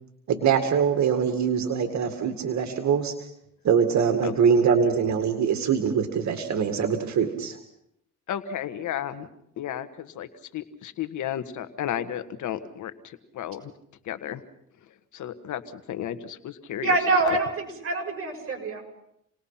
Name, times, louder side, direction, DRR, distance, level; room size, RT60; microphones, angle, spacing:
voice 1, 0.3-3.1 3.6-7.6, right 7 dB, 65° right, 6 dB, 2.2 m, -23 dB
voice 2, 8.3-9.3 9.6-13.7 14.0-14.4 15.1-17.0 17.2-17.4, left 10 dB, 75° left, 11 dB, 1.6 m, -33 dB
voice 3, 16.8-18.8, right 3 dB, 50° right, 2 dB, 7.0 m, -25 dB
29.0 x 20.0 x 5.8 m, 0.77 s
cardioid pair, 90°, 30 cm